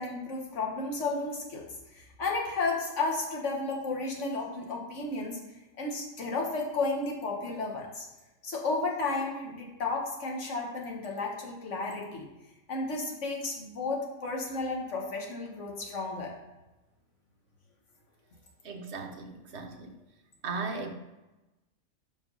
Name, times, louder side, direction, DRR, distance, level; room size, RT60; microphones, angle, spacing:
voice 1, 0.0-1.7 1.9-5.4 5.8-8.1 8.4-12.3 12.7-16.3 19.7-19.8, left 3 dB, 65° left, 0 dB, 1.7 m, -33 dB
voice 2, 18.6-19.9 20.4-20.9, right 4 dB, 60° right, 4 dB, 1.1 m, -37 dB
5.8 x 5.3 x 5.6 m, 1.0 s
omnidirectional pair, 1.4 m